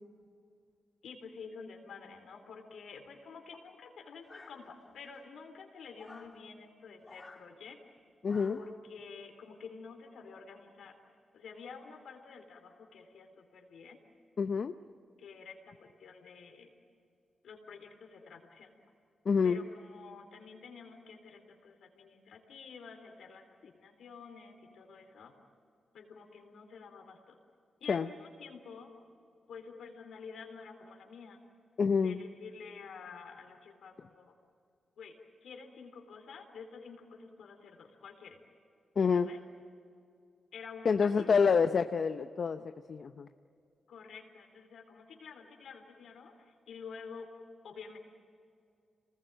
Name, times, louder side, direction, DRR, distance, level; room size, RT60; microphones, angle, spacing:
voice 1, 1.0-7.8 8.5-10.9 11.3-14.0 15.2-16.7 17.4-18.7 19.4-25.3 25.9-27.4 27.8-28.9 29.5-31.4 32.0-34.4 35.0-35.2 35.4-38.4 39.1-39.4 40.5-41.6 43.9-47.3 47.6-48.0, left 5 dB, 80° left, 4 dB, 3.8 m, -49 dB
sound 1, 4.3-5.0 6.0-6.4 7.0-7.5 8.3-8.8, left 3 dB, 30° left, 3.1 m, -53 dB
voice 2, 8.2-8.6 14.4-14.7 19.2-19.6 27.9-28.1 31.8-32.2 39.0-39.3 40.8-43.3, left 5 dB, 60° left, 9 dB, 0.7 m, -27 dB
27.0 x 20.0 x 9.1 m, 2.4 s
cardioid pair, 60°, 0 cm